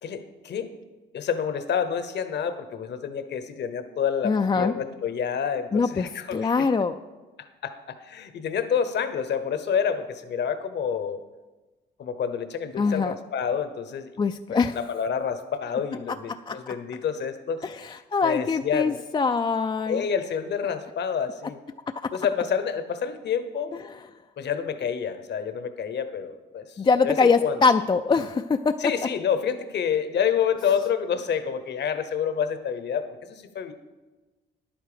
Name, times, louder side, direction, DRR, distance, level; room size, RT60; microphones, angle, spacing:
voice 1, 0.0-0.7 1.1-6.5 7.4-11.2 12.0-14.1 14.5-17.6 18.2-19.0 19.9-21.6 22.1-23.7 24.4-27.6 28.8-33.7, left 7 dB, 60° left, 10 dB, 1.0 m, -28 dB
voice 2, 4.2-4.7 5.7-7.0 12.8-13.1 14.2-14.8 16.1-16.8 17.6-20.0 22.0-22.1 26.8-28.9, left 4 dB, 25° left, 7 dB, 0.4 m, -23 dB
10.5 x 9.0 x 5.0 m, 1.2 s
cardioid pair, 90°, 20 cm